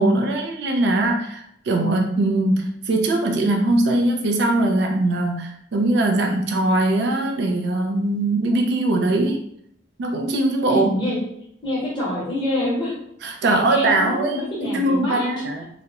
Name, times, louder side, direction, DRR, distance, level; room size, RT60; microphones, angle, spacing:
voice 1, 0.0-9.4 10.0-10.9 13.2-15.7, right 2 dB, 55° right, 3 dB, 0.3 m, -21 dB
voice 2, 10.7-11.2 11.6-13.0 13.5-15.3, left 1 dB, 25° left, -6 dB, 0.9 m, -26 dB
2.3 x 2.0 x 2.8 m, 0.73 s
head